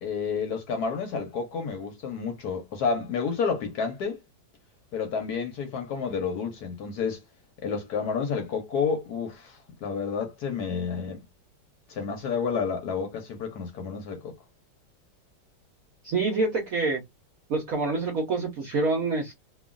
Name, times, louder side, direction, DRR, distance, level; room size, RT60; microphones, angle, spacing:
voice 1, 0.0-4.2 4.9-7.2 7.6-11.3 11.9-14.3, left 5 dB, 65° left, 1.1 m, -30 dB
voice 2, 16.0-17.0 17.5-19.3, right 3 dB, 60° right, 1.0 m, -26 dB
3.0 x 2.4 x 2.3 m
omnidirectional pair, 2.0 m